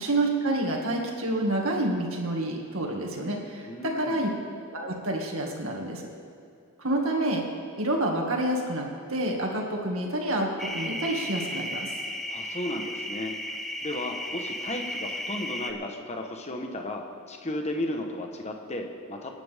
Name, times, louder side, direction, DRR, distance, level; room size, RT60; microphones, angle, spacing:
voice 1, 0.0-3.7 4.0-4.3 4.7-6.1 6.8-7.4 7.8-11.9, right 1 dB, 65° right, 0 dB, 2.2 m, -28 dB
voice 2, 3.7-4.2 12.3-13.4 13.8-19.3, left 1 dB, 30° left, 3 dB, 1.3 m, -34 dB
sound 1, 10.6-15.7, left 1 dB, ahead, 0.9 m, -34 dB
25.5 x 10.0 x 3.7 m, 2.6 s
head